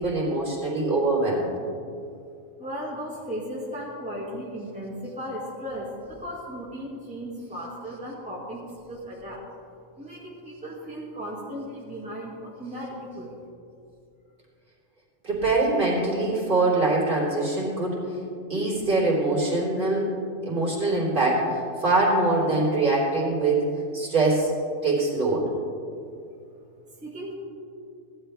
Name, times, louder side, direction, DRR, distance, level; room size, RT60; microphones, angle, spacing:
voice 1, 0.0-1.5 15.2-18.0 18.5-20.1 20.4-23.7 23.9-24.5 24.8-25.5, right 2 dB, 40° right, -5 dB, 3.8 m, -23 dB
voice 2, 2.6-9.5 10.0-13.3 27.0-27.3, equal, 5° right, -7 dB, 2.0 m, -36 dB
17.5 x 12.0 x 3.4 m, 2.5 s
omnidirectional pair, 1.4 m